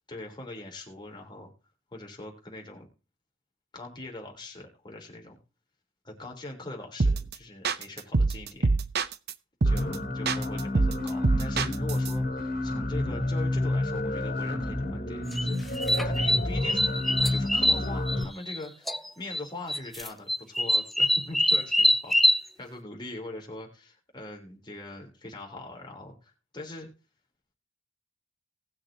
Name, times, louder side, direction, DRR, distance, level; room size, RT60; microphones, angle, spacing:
voice 1, 0.1-1.5 1.9-2.9 3.7-5.4 6.0-8.7 9.6-26.9, left 2 dB, 20° left, 1 dB, 3.5 m, -42 dB
sound 1, 7.0-7.3 7.6-9.3 9.6-10.0 10.3-12.1, right 3 dB, 50° right, 0.7 m, -24 dB
sound 2, 9.7-18.2, left 1 dB, 40° left, 3.0 m, -29 dB
sound 3, 15.3-18.6 18.9-19.4 19.7-22.4, left 1 dB, ahead, 0.4 m, -24 dB
19.5 x 6.7 x 2.8 m, 0.31 s
head